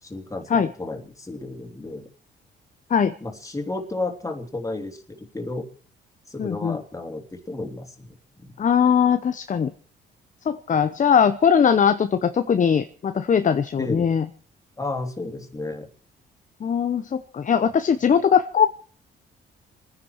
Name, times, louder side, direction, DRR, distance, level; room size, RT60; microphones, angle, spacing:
voice 1, 0.0-2.0 3.2-5.7 6.3-8.5 13.8-14.2 14.8-15.9, left 2 dB, 15° left, 3 dB, 3.2 m, -32 dB
voice 2, 6.4-6.8 8.6-9.7 10.5-14.3 16.6-18.7, left 7 dB, 40° left, 9 dB, 0.9 m, -20 dB
28.0 x 10.0 x 4.6 m, 0.40 s
cardioid pair, 90°, 20 cm